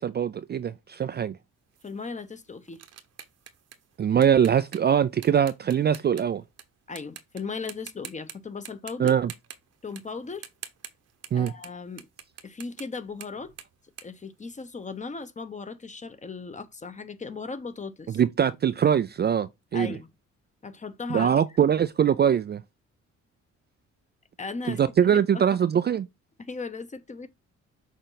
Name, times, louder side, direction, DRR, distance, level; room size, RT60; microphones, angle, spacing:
voice 1, 0.0-1.4 4.0-6.4 9.0-9.3 11.3-11.5 18.1-19.9 21.1-22.6 24.7-26.1, right 8 dB, 35° right, 0.4 m, -22 dB
sound 1, 1.7-6.6 7.0-7.4 7.7-8.3 8.6-15.0, right 8 dB, 55° right, 1.0 m, -45 dB
voice 2, 1.8-2.8 6.9-9.1 9.8-10.4 11.3-12.1 12.4-13.5 14.0-18.2 19.7-20.1 20.6-21.3 24.4-25.4 26.4-27.3, left 4 dB, 25° left, 0.9 m, -37 dB
6.5 x 3.9 x 3.9 m
cardioid pair, 90°, 30 cm